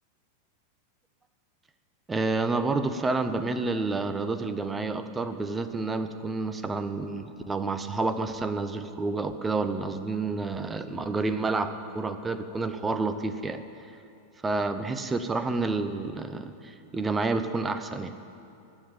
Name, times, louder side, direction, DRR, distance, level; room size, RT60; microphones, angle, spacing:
voice 1, 2.1-13.6 14.4-18.1, right 3 dB, 15° right, 10 dB, 0.7 m, -29 dB
14.5 x 6.9 x 9.0 m, 2.6 s
figure-of-eight pair, 90°, 0 cm